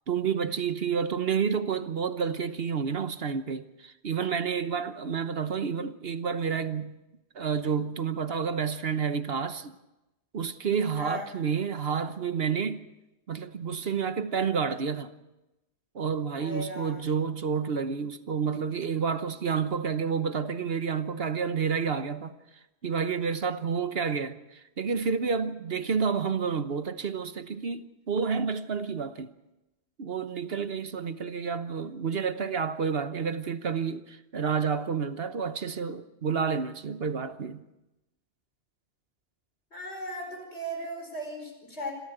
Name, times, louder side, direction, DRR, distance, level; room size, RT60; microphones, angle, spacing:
voice 1, 0.1-7.0 7.3-9.7 10.3-12.8 13.3-15.1 15.9-22.3 22.8-29.3 30.0-37.6, right 6 dB, 60° right, 1.2 m, -30 dB
voice 2, 11.0-11.3 16.4-17.0 39.7-41.9, right 1 dB, 70° left, 5.5 m, -37 dB
27.0 x 13.5 x 8.0 m
omnidirectional pair, 1.2 m